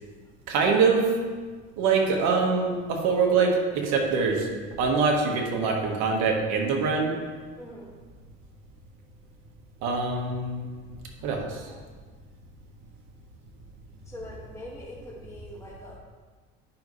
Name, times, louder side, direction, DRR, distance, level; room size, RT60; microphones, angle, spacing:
voice 1, 0.5-1.1 1.8-4.5 4.8-7.2 9.8-10.7 11.2-11.7, right 4 dB, 75° right, 1 dB, 1.7 m, -24 dB
voice 2, 7.6-7.9 11.2-11.9 14.0-16.0, left 1 dB, 10° left, -6 dB, 2.0 m, -44 dB
10.5 x 5.5 x 3.3 m, 1.5 s
supercardioid pair, 100°, 29 cm